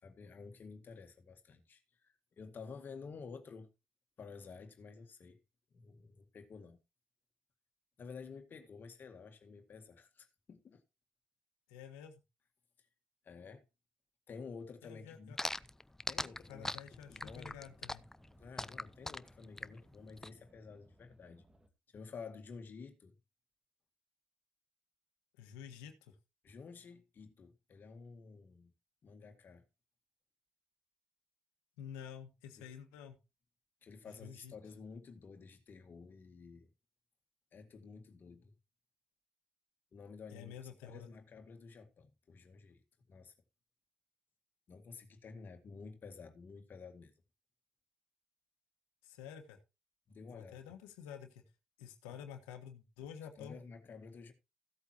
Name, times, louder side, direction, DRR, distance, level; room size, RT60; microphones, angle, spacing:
voice 1, 0.0-3.7 4.2-5.4 5.7-6.8 8.0-10.8 13.2-13.6 14.3-15.3 16.1-17.5 18.4-21.4 21.9-23.1 26.4-28.7 29.0-29.7 32.6-32.7 33.8-36.7 37.5-38.5 39.9-40.6 40.8-42.8 43.1-43.3 44.7-47.1 50.1-50.6 52.1-52.2 53.4-54.3, left 5 dB, 55° left, 1.9 m, -51 dB
voice 2, 11.7-12.2 14.8-15.4 16.5-18.0 25.4-26.1 31.8-33.2 34.2-34.5 40.3-41.1 49.0-49.6 50.3-51.4 51.8-53.6, left 8 dB, 90° left, 1.5 m, -50 dB
sound 1, 15.4-20.3, left 1 dB, 10° left, 0.7 m, -40 dB
sound 2, 16.1-21.7, equal, 20° right, 2.1 m, -66 dB
16.0 x 8.3 x 2.9 m
hypercardioid pair, 50°, 4 cm